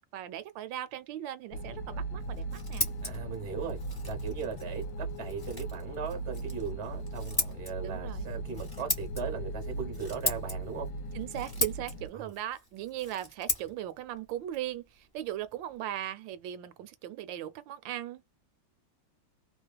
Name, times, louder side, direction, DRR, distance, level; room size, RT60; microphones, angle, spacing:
voice 1, 0.1-2.9 7.8-8.3 11.1-14.8 15.1-18.3, right 12 dB, 80° right, 1.3 m, -38 dB
sound 1, 1.5-12.1, right 2 dB, 70° left, 1.2 m, -38 dB
Scissors, 2.2-15.8, left 1 dB, 20° left, 0.6 m, -39 dB
voice 2, 3.0-3.8 4.0-4.9 5.2-10.9 12.1-12.3, right 6 dB, 35° right, 0.5 m, -38 dB
2.9 x 2.3 x 2.2 m
omnidirectional pair, 2.1 m